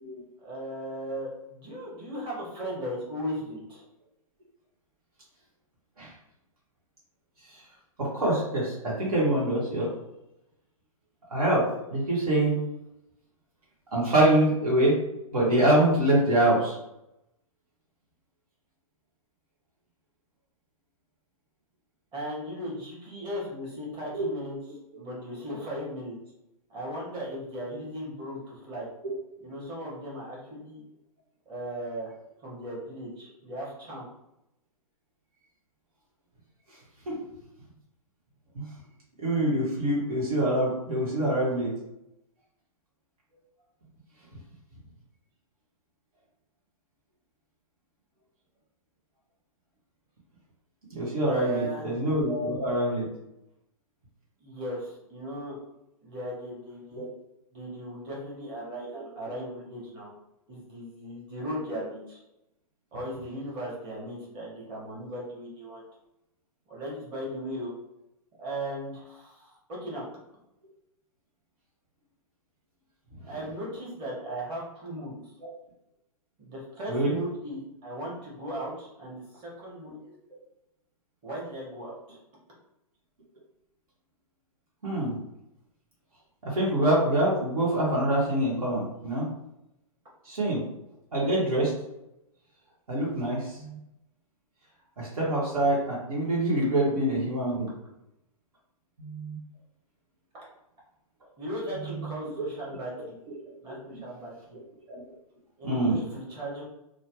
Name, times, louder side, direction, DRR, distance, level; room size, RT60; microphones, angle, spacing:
voice 1, 0.4-3.8 22.1-24.6 25.0-26.2 26.7-28.9 29.4-30.8 31.4-32.1 32.4-34.1 51.2-51.9 54.4-55.6 56.0-57.1 57.5-60.1 60.5-62.2 62.9-65.8 66.7-67.7 68.4-70.1 73.3-75.3 76.4-80.1 81.2-82.2 101.4-103.2 103.6-104.6 105.6-106.6, equal, 25° right, -5 dB, 1.3 m, -37 dB
voice 2, 8.0-9.9 11.3-11.6 11.9-12.6 13.9-15.0 15.3-16.8 24.1-24.3 37.1-37.2 38.5-38.6 39.2-41.7 50.9-53.1 56.9-57.0 76.9-77.2 84.8-85.2 86.5-89.3 90.2-90.6 91.1-91.7 92.9-93.8 95.0-97.7 99.0-99.4 104.9-105.0 105.6-106.0, right 1 dB, 75° right, -6 dB, 1.3 m, -25 dB
3.1 x 2.2 x 2.9 m, 0.86 s
hypercardioid pair, 125°, 19 cm